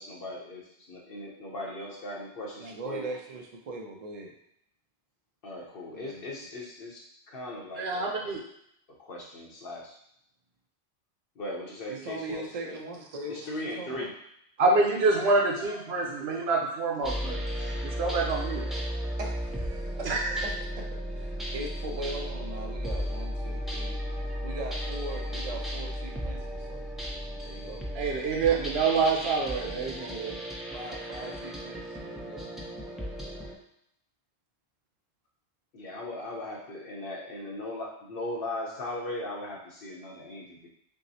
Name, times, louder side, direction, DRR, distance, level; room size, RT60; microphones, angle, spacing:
voice 1, 0.0-3.1 5.4-8.3 9.0-10.0 11.4-12.8 13.3-14.1 35.7-40.7, left 1 dB, 65° left, -2 dB, 1.1 m, -38 dB
voice 2, 2.6-4.3 5.9-6.3 11.9-14.1 19.2-20.9 21.1-24.0 24.4-26.8 27.4-27.9 30.7-32.5, right 2 dB, 45° right, 1 dB, 0.6 m, -40 dB
voice 3, 7.8-8.4 14.6-18.9 20.0-20.4 27.7-30.3, right 3 dB, 80° right, -1 dB, 1.1 m, -27 dB
sound 1, 17.0-33.5, equal, ahead, 0.5 m, -35 dB
6.1 x 2.0 x 2.7 m, 0.73 s
omnidirectional pair, 1.1 m